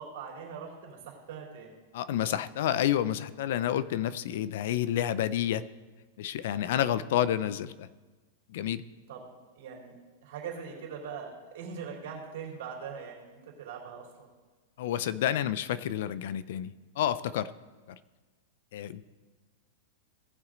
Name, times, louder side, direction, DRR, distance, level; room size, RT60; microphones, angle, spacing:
voice 1, 0.0-1.8 9.1-9.2 9.6-14.3, right 6 dB, 65° right, -1 dB, 3.6 m, -42 dB
voice 2, 1.9-5.6 6.2-7.9 8.5-8.8 14.8-17.5 17.9-18.0 18.7-19.1, left 11 dB, 65° left, 17 dB, 0.4 m, -29 dB
18.0 x 6.1 x 3.9 m, 1.3 s
supercardioid pair, 155°, 0 cm